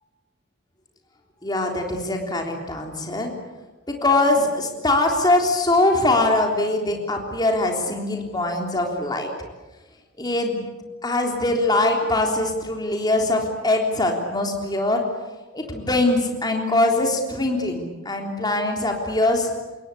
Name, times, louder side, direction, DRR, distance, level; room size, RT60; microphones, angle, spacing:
voice 1, 1.4-3.3 3.9-9.3 10.2-10.6 11.0-15.0 15.5-19.5, left 2 dB, 20° left, 1 dB, 3.5 m, -22 dB
27.5 x 22.5 x 8.5 m, 1.1 s
head